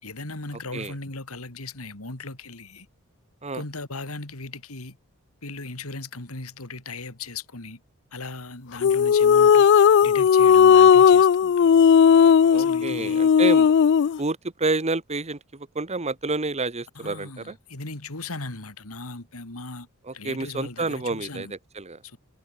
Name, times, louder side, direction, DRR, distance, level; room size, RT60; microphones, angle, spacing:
voice 1, 0.0-2.9 3.5-5.0 5.4-7.8 8.1-11.7 12.5-13.2 16.9-19.9 20.1-21.5 22.0-22.2, left 3 dB, 70° left, 3.1 m, -38 dB
sound 1, 8.8-14.2, left 7 dB, 55° left, 0.3 m, -16 dB
voice 2, 12.5-13.7 14.2-17.5 20.1-22.0, right 3 dB, 30° right, 1.4 m, -29 dB
head